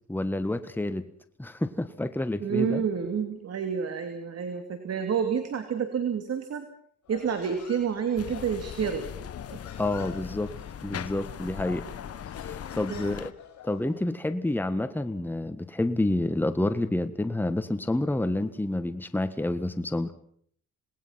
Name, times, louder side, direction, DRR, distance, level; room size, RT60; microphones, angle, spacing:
voice 1, 0.1-1.1 1.4-2.8 9.8-10.5 10.8-11.9 12.4-13.3 13.6-20.1, left 1 dB, 5° left, 10 dB, 1.5 m, -29 dB
voice 2, 2.4-6.7 7.1-9.0 9.5-9.6 12.9-13.2, right 7 dB, 55° right, 7 dB, 2.8 m, -29 dB
Human voice, 7.0-14.1, left 8 dB, 70° left, 5.8 m, -48 dB
sound 1, 8.2-13.3, left 9 dB, 50° left, 1.1 m, -39 dB
27.5 x 19.5 x 5.9 m, 0.62 s
cardioid pair, 90°, 30 cm